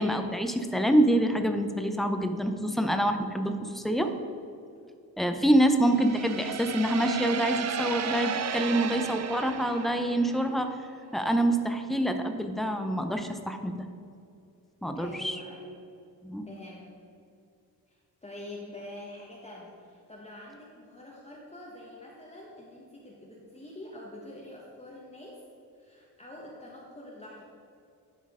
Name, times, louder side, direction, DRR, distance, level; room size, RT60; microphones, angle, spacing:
voice 1, 0.0-4.1 5.2-10.8 11.1-13.9 14.8-15.4 16.2-16.5, right 1 dB, ahead, 6 dB, 0.5 m, -26 dB
sound 1, 5.9-10.6, right 7 dB, 45° right, 0.5 m, -34 dB
voice 2, 14.9-15.8 16.5-16.9 17.9-25.4 25.8-27.4, left 1 dB, 15° left, -4 dB, 1.1 m, -45 dB
11.0 x 4.4 x 3.6 m, 2.5 s
cardioid pair, 85°, 37 cm